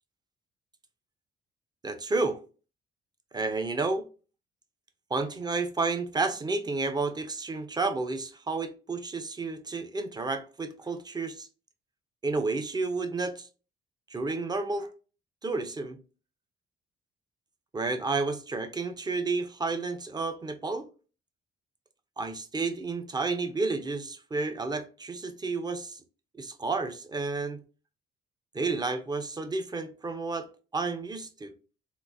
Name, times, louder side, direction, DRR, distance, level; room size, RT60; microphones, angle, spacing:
voice 1, 1.8-2.4 3.3-4.0 5.1-11.5 12.2-13.5 14.1-14.9 15.4-16.0 17.7-20.9 22.2-26.0 26.4-27.6 28.5-30.5 30.7-31.5, right 3 dB, 20° right, 0.5 m, -31 dB
3.7 x 2.4 x 2.6 m
cardioid pair, 90°, 20 cm